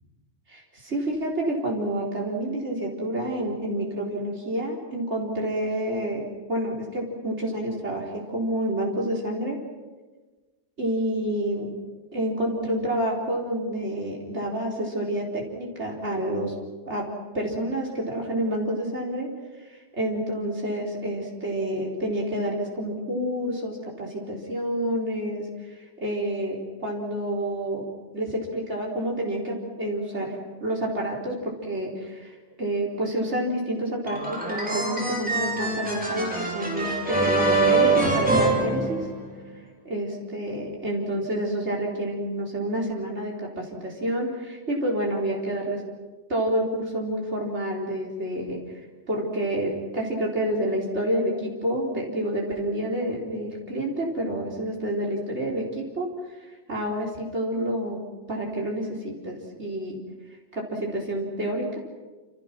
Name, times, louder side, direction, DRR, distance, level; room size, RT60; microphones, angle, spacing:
voice 1, 0.5-9.6 10.8-11.7 12.1-16.5 16.8-17.1 17.3-19.3 19.9-27.8 28.1-39.1 39.8-45.8 46.3-48.6 49.1-56.1 56.4-58.0 58.3-59.9 60.5-61.8, right 1 dB, 65° right, -2 dB, 4.7 m, -28 dB
sound 1, 34.1-39.5, right 3 dB, 5° right, 5.2 m, -24 dB
28.5 x 28.5 x 6.1 m, 1.3 s
omnidirectional pair, 1.3 m